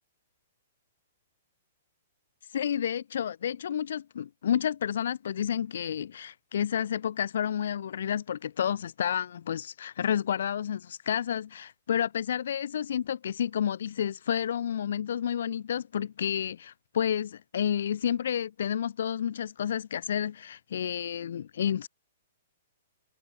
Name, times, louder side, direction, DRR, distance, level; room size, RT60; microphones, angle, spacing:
voice 1, 2.5-21.9, left 9 dB, 70° left, 1.0 m, -30 dB
hypercardioid pair, 160°, 0 cm